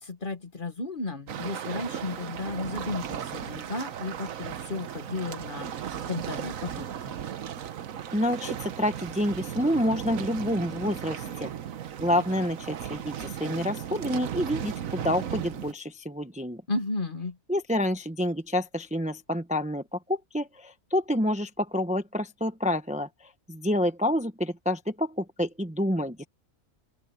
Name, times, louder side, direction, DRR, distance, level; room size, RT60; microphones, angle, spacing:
voice 1, 0.0-6.9 16.7-17.4, left 3 dB, 40° left, 1.5 m, -34 dB
sound 1, 1.3-15.7, right 9 dB, 75° right, 1.3 m, -36 dB
voice 2, 8.1-11.5 12.0-16.6 17.5-23.1 23.5-26.3, left 1 dB, 5° right, 0.9 m, -28 dB
open air
omnidirectional pair, 1.4 m